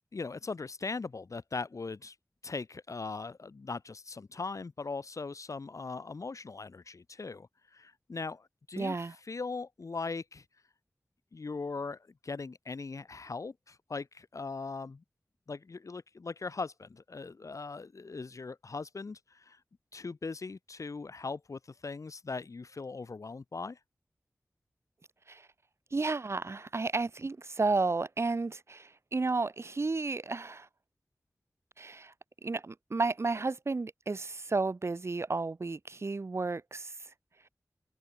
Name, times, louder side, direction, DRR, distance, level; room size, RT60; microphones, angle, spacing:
voice 1, 0.1-2.1 2.4-9.0 9.3-10.4 11.3-15.0 15.5-19.6 19.9-23.8, left 4 dB, 70° left, 1.4 m, -40 dB
voice 2, 8.8-9.1 25.3-25.5 25.9-30.7 31.8-32.1 32.4-37.0, right 3 dB, 50° right, 0.8 m, -32 dB
open air
wide cardioid pair, 60°, 6 cm